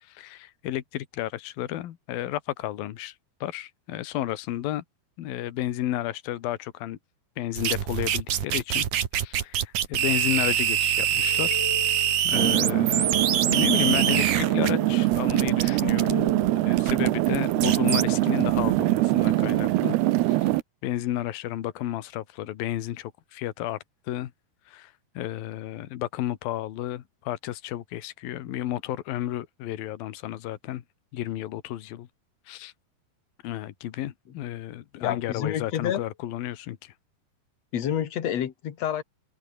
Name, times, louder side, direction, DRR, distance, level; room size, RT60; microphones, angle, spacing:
voice 1, 0.1-3.1 3.4-4.8 5.2-7.0 7.4-8.9 9.2-11.6 12.2-16.3 16.6-20.0 20.3-20.5 20.8-23.8 24.1-24.3 24.7-30.8 31.1-32.1 32.5-32.7 33.4-36.9, left 13 dB, 70° left, 3.2 m, -32 dB
sound 1, 7.6-14.7 15.1-18.0 18.5-18.8, right 10 dB, 55° right, 3.0 m, -25 dB
sound 2, 11.1-12.2 12.6-13.7 14.1-15.2 15.7-16.8, left 4 dB, 30° left, 4.4 m, -39 dB
sound 3, 12.3-20.6, right 17 dB, 85° right, 2.9 m, -23 dB
voice 2, 35.0-36.0 37.7-39.0, left 10 dB, 50° left, 2.6 m, -28 dB
open air
omnidirectional pair, 4.6 m